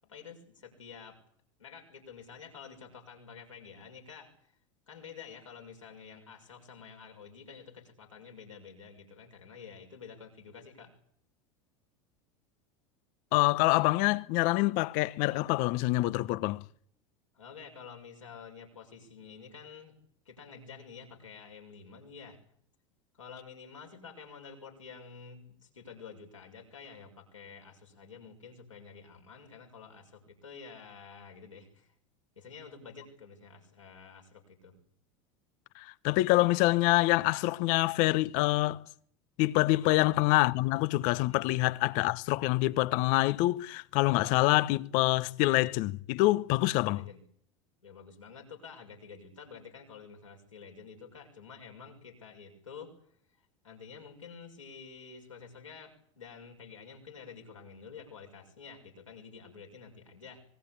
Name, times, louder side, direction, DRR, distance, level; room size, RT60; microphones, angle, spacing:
voice 1, 0.0-1.2 1.6-4.5 4.9-10.9 17.3-20.0 20.2-22.4 23.1-31.9 32.4-34.7 39.7-40.1 41.2-41.5 46.9-47.2 47.8-52.9 53.3-60.4, left 6 dB, 90° left, 6.4 m, -49 dB
voice 2, 13.3-16.6 35.8-38.8 39.4-47.0, left 19 dB, 55° left, 1.0 m, -26 dB
24.5 x 21.0 x 8.6 m
hypercardioid pair, 80°, 16 cm